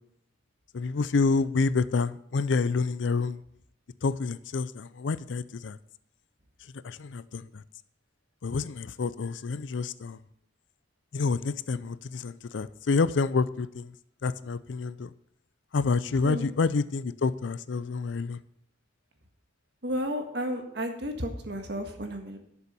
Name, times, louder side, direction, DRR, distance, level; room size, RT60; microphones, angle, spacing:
voice 1, 0.7-3.4 4.0-5.8 6.8-7.6 8.4-10.2 11.1-13.9 14.2-15.1 15.7-18.4, left 4 dB, 85° left, 16 dB, 0.5 m, -28 dB
voice 2, 19.8-22.4, equal, 65° right, 4 dB, 1.6 m, -32 dB
11.5 x 6.9 x 5.5 m, 0.73 s
head